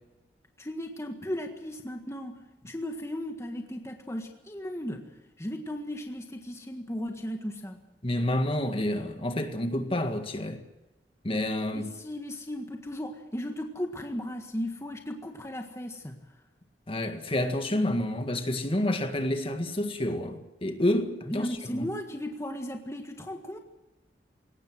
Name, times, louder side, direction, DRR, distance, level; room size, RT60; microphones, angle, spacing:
voice 1, 0.6-2.4 2.7-5.1 5.4-7.8 11.7-16.2 21.2-23.6, equal, 15° left, 1.7 m, -36 dB
voice 2, 8.0-10.6 11.2-11.9 16.9-21.5 21.7-21.9, left 1 dB, 30° left, 1.8 m, -29 dB
22.0 x 18.5 x 7.8 m
head